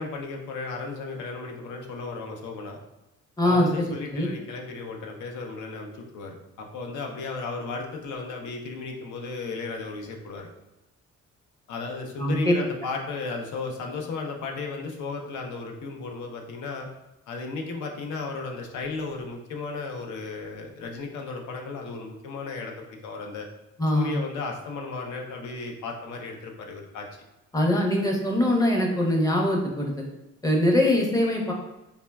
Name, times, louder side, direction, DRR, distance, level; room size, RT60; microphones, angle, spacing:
voice 1, 0.0-2.8 3.4-10.5 11.7-16.9 17.3-23.5 23.9-27.1, left 3 dB, 75° left, 2 dB, 0.6 m, -34 dB
voice 2, 3.4-3.8 4.1-4.3 12.2-12.6 23.8-24.1 27.5-30.1 30.4-31.5, left 1 dB, 10° left, 0 dB, 0.6 m, -22 dB
3.3 x 2.0 x 2.2 m, 0.98 s
cardioid pair, 90°, 30 cm